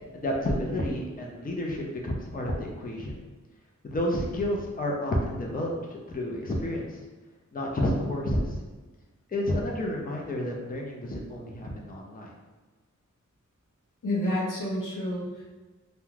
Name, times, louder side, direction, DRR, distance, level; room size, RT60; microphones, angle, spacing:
voice 1, 0.2-3.1 3.8-6.8 7.5-8.6 9.3-12.3, left 1 dB, 30° left, -1 dB, 0.4 m, -30 dB
voice 2, 14.0-15.5, left 1 dB, 85° left, -4 dB, 0.7 m, -29 dB
2.3 x 2.1 x 3.1 m, 1.2 s
wide cardioid pair, 70°, 31 cm